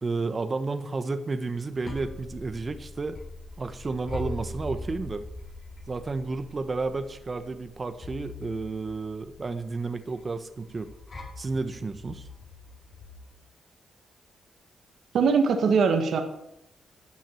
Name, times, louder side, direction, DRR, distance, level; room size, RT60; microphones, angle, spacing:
voice 1, 0.0-3.2 3.6-5.2 5.9-10.9 11.4-12.3, right 3 dB, 40° right, 9 dB, 1.2 m, -31 dB
sound 1, 1.7-13.3, left 2 dB, 50° left, 4.9 m, -42 dB
voice 2, 15.1-16.2, right 5 dB, 70° right, 5 dB, 1.6 m, -21 dB
12.5 x 7.4 x 7.7 m, 0.80 s
supercardioid pair, 50°, 0 cm